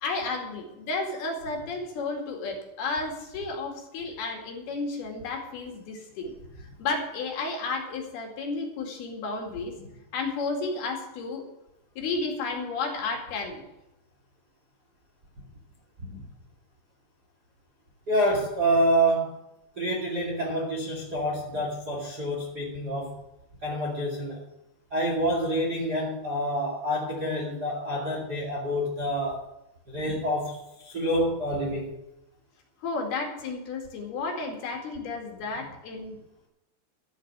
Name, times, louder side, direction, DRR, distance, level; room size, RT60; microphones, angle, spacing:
voice 1, 0.0-6.3 6.6-9.7 10.1-11.4 12.0-13.6 32.8-36.2, left 3 dB, 65° left, 2 dB, 4.0 m, -32 dB
voice 2, 18.1-19.3 19.8-23.1 23.6-24.5 24.9-29.4 29.9-31.9, right 1 dB, 30° right, -1 dB, 2.0 m, -27 dB
13.0 x 8.2 x 8.0 m, 0.89 s
omnidirectional pair, 5.1 m